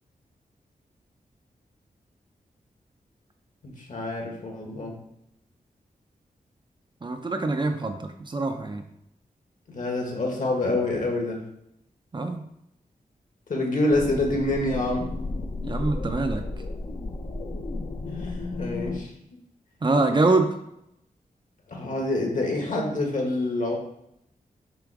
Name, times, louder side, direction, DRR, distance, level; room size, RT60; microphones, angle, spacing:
voice 1, 3.6-5.0 9.7-11.4 13.5-15.1 18.1-19.1 21.7-23.8, left 2 dB, 60° left, 0 dB, 1.5 m, -27 dB
voice 2, 7.0-8.8 12.1-12.4 15.6-16.4 19.8-20.5, right 3 dB, 30° right, 5 dB, 0.5 m, -24 dB
sound 1, 13.9-19.0, left 2 dB, 40° left, 0.6 m, -33 dB
7.0 x 3.0 x 4.8 m, 0.79 s
wide cardioid pair, 150°, 15 cm